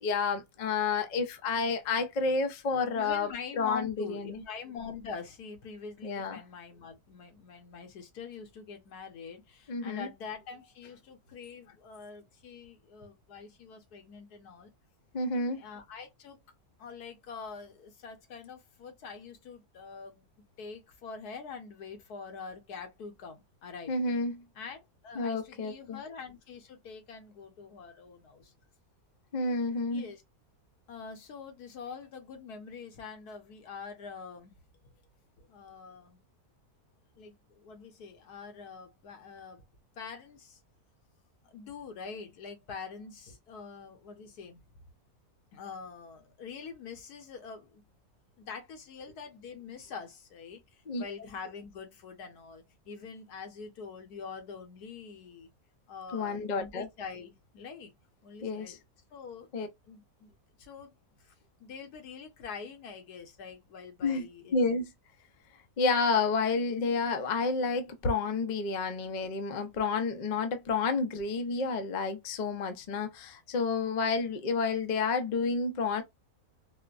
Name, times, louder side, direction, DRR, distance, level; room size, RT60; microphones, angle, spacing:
voice 1, 0.0-3.3 3.6-4.4 6.0-6.4 9.7-10.1 15.1-15.6 23.9-24.4 25.2-26.0 29.3-30.1 50.9-51.0 56.1-56.9 58.4-58.8 59.5-59.7 64.0-64.9 65.8-76.0, left 4 dB, 55° left, 0.5 m, -30 dB
voice 2, 2.9-14.7 15.6-16.4 16.8-20.2 20.6-23.9 24.5-28.5 29.9-30.2 30.9-34.9 35.4-36.2 37.2-39.6 40.0-40.6 41.4-44.6 45.5-47.8 48.4-55.5 55.9-57.9 58.2-58.8 59.1-59.5 59.8-60.3 60.6-61.3 61.6-64.6, left 5 dB, 80° left, 1.5 m, -45 dB
4.2 x 2.1 x 2.5 m
omnidirectional pair, 1.6 m